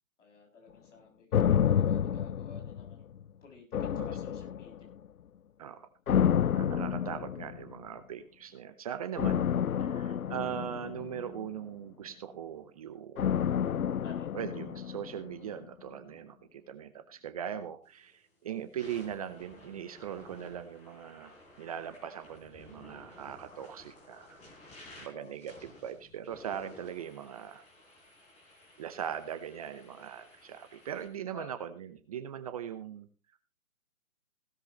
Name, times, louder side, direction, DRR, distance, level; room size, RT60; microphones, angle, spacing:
voice 1, 0.2-3.1 3.4-4.9 14.0-14.4 25.1-25.3 31.3-31.5, left 3 dB, 60° left, 2 dB, 6.9 m, -53 dB
sound 1, 1.3-3.2 3.7-5.0 6.1-7.8 9.2-11.6 13.2-15.3 15.6-15.7, left 9 dB, 85° left, 0.6 m, -29 dB
voice 2, 6.6-9.5 9.8-13.4 14.3-24.4 25.0-27.6 28.8-33.1, right 9 dB, 25° right, 11 dB, 0.8 m, -40 dB
sound 2, 17.9-18.1 18.6-31.1, left 1 dB, 15° left, 4.4 m, -54 dB
16.5 x 13.0 x 3.1 m, 0.31 s
figure-of-eight pair, 135°, 41 cm